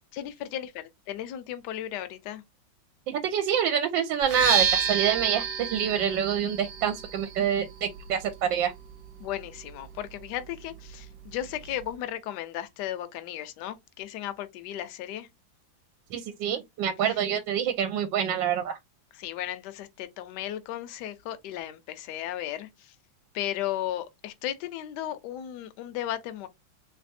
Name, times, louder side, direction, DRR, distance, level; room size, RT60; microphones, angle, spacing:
voice 1, 0.1-2.4 9.2-15.3 19.1-22.9 23.3-26.5, left 12 dB, 70° left, 1.1 m, -35 dB
voice 2, 3.1-8.7 16.1-18.8, right 8 dB, 80° right, 1.3 m, -26 dB
sound 1, 4.2-12.0, right 6 dB, 60° right, 1.2 m, -32 dB
3.4 x 3.3 x 2.6 m
omnidirectional pair, 2.1 m